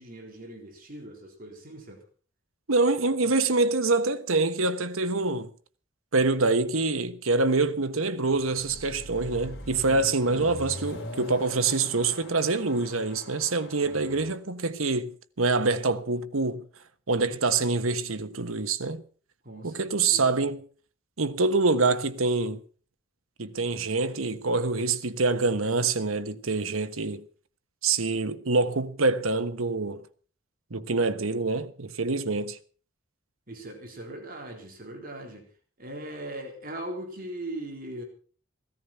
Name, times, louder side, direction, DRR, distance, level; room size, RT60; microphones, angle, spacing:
voice 1, 0.0-2.0 9.8-10.5 19.4-20.3 33.5-35.5 35.8-38.0, right 1 dB, 45° right, 4.0 m, -40 dB
voice 2, 2.7-5.5 6.1-16.7 17.1-19.0 19.6-20.7 21.2-22.6 23.4-27.2 27.8-30.0 30.7-32.6, right 3 dB, 85° right, 1.3 m, -25 dB
Car passing by / Accelerating revving vroom, 8.3-14.4, left 1 dB, 55° left, 3.9 m, -42 dB
16.0 x 14.0 x 5.7 m
head